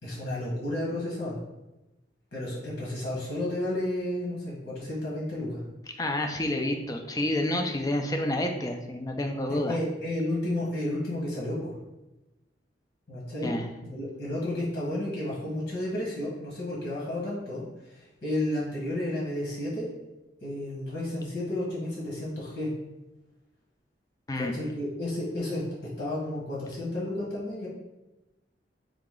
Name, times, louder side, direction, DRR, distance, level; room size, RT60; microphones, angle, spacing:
voice 1, 0.0-1.4 2.3-5.6 9.5-11.7 13.1-13.5 13.9-19.9 20.4-22.7 24.3-25.6 26.0-27.7, left 1 dB, 70° left, -5 dB, 1.4 m, -32 dB
voice 2, 6.0-9.8 13.4-13.7 24.3-24.6, left 1 dB, 20° left, 4 dB, 0.4 m, -29 dB
4.0 x 2.9 x 3.7 m, 1.0 s
head